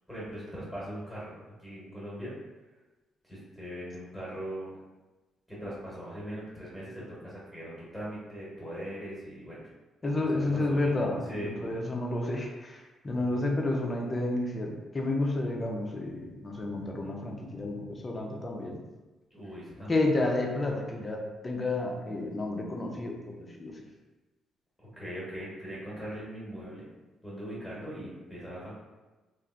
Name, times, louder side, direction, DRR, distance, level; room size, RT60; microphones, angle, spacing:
voice 1, 0.1-1.3 1.6-2.3 3.2-4.7 5.5-9.6 10.3-10.9 11.3-11.5 13.3-13.4 19.3-20.1 24.8-26.9 27.2-28.7, equal, 5° left, -8 dB, 1.2 m, -40 dB
voice 2, 10.0-18.8 19.9-23.8, left 2 dB, 30° left, 0 dB, 0.6 m, -31 dB
3.2 x 2.5 x 2.5 m, 1.2 s
cardioid pair, 90°, 0 cm